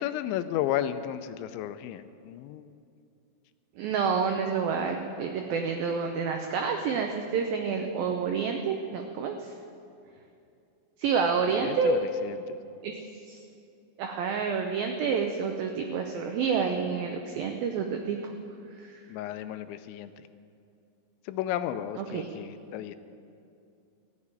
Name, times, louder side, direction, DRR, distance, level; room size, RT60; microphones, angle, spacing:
voice 1, 0.0-2.7 11.5-12.6 19.1-20.1 21.3-23.0, left 11 dB, 85° left, 11 dB, 2.9 m, -33 dB
voice 2, 3.8-9.4 11.0-12.1 12.8-12.9 13.3-13.4 14.0-18.3 18.8-18.9 22.0-22.3, right 5 dB, 85° right, 4 dB, 2.0 m, -28 dB
16.5 x 7.1 x 9.6 m, 2.5 s
omnidirectional pair, 5.2 m